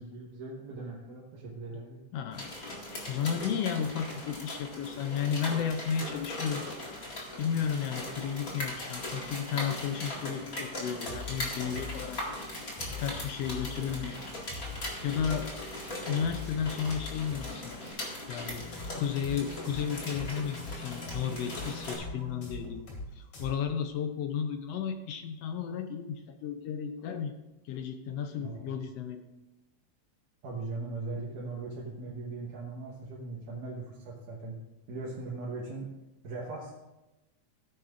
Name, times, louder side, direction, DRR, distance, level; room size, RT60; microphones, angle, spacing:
voice 1, 0.0-2.0 28.4-28.8 30.4-34.6 34.9-35.9 36.2-36.7, right 3 dB, 90° right, -3 dB, 2.8 m, -39 dB
voice 2, 2.1-2.5 3.1-6.6 7.4-12.2 12.9-14.2 15.0-15.5 16.1-17.8 18.3-27.3 27.6-29.2, left 7 dB, 80° left, 7 dB, 1.4 m, -33 dB
sound 1, 2.3-21.9, left 1 dB, 30° left, 2.0 m, -39 dB
Snare drum, 11.1-17.9, left 4 dB, 10° left, 1.8 m, -43 dB
sound 2, 18.5-23.1 23.3-23.5, left 2 dB, 55° left, 3.2 m, -42 dB
15.5 x 9.2 x 2.5 m, 1.0 s
omnidirectional pair, 3.5 m